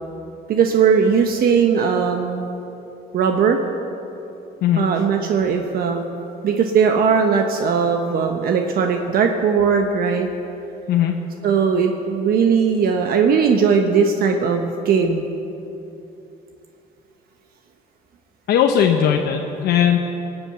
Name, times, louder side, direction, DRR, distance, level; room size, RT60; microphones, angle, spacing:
voice 1, 0.5-2.5 3.1-3.6 4.8-6.0 6.4-10.3 11.4-15.3, right 6 dB, 65° right, 4 dB, 1.1 m, -18 dB
voice 2, 18.5-20.0, left 9 dB, 75° left, 3 dB, 1.0 m, -18 dB
18.0 x 8.1 x 8.1 m, 2.8 s
cardioid pair, 110°, 17 cm